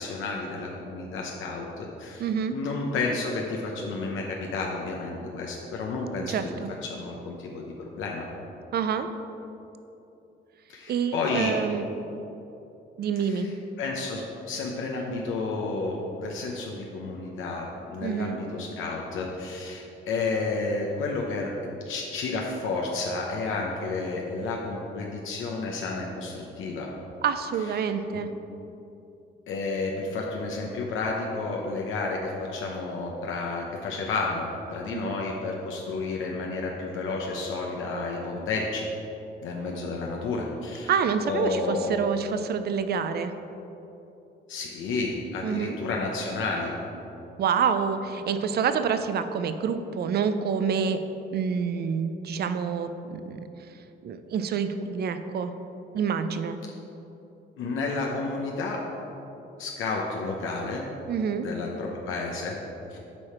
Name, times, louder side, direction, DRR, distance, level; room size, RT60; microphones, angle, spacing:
voice 1, 0.0-2.2 2.5-6.5 6.8-8.3 10.7-11.5 13.3-13.5 13.8-21.5 21.9-26.9 27.8-28.2 29.5-38.8 39.4-40.9 41.2-41.9 44.5-46.8 57.6-58.8 59.6-60.8 61.4-62.6 62.9-63.0, left 3 dB, 80° left, -1 dB, 0.8 m, -31 dB
voice 2, 2.2-2.6 6.3-6.7 8.7-9.1 10.9-11.9 13.0-13.5 18.0-18.4 27.2-28.3 34.9-35.1 40.9-43.3 45.4-45.8 47.4-51.0 51.3-53.5 54.0-55.5 55.9-56.6 61.1-61.5, right 6 dB, 55° right, 10 dB, 0.5 m, -27 dB
8.5 x 4.9 x 4.3 m, 2.9 s
cardioid pair, 90°, 20 cm